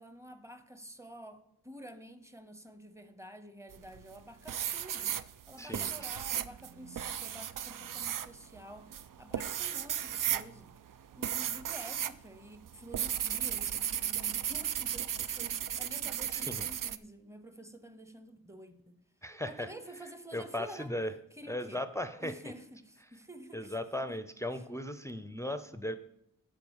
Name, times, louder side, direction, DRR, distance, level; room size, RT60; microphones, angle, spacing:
voice 1, 0.0-5.1 5.5-8.9 9.2-10.7 11.1-19.0 19.4-20.9 21.3-21.8 22.2-24.1 24.5-24.7, right 1 dB, 10° right, 10 dB, 0.9 m, -50 dB
sound 1, 3.7-4.2 4.5-12.2 12.4-17.0, right 9 dB, 65° right, 0.5 m, -35 dB
voice 2, 5.6-5.9 16.3-16.7 19.2-19.7 20.3-21.1 21.5-22.4 23.5-26.0, left 1 dB, 10° left, 10 dB, 0.5 m, -37 dB
11.0 x 4.9 x 7.2 m, 0.76 s
wide cardioid pair, 100°, 34 cm